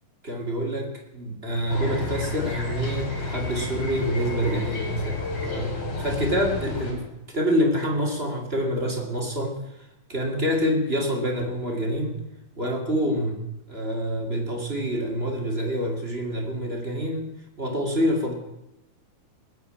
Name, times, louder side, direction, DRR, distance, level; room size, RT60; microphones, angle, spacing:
voice 1, 0.2-9.6 10.1-12.2 12.6-13.4 13.7-17.3 17.6-18.3, equal, 20° right, 1 dB, 2.0 m, -27 dB
sound 1, 1.7-6.9, left 3 dB, 50° left, 4.7 m, -31 dB
19.5 x 7.0 x 8.7 m, 0.92 s
omnidirectional pair, 3.5 m